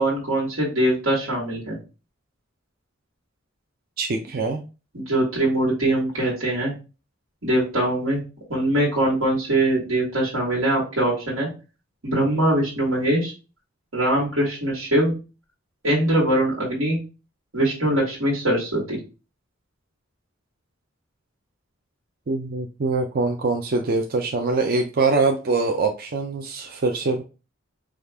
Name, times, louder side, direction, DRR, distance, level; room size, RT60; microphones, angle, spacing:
voice 1, 0.0-1.8 4.9-6.7 7.4-8.2 8.5-11.5 12.0-13.3 13.9-15.1 15.8-17.0 17.5-19.0, right 1 dB, 75° right, -5 dB, 1.6 m, -22 dB
voice 2, 4.0-4.6 22.3-27.2, right 3 dB, 45° right, 3 dB, 0.5 m, -23 dB
5.1 x 2.4 x 3.3 m, 0.32 s
head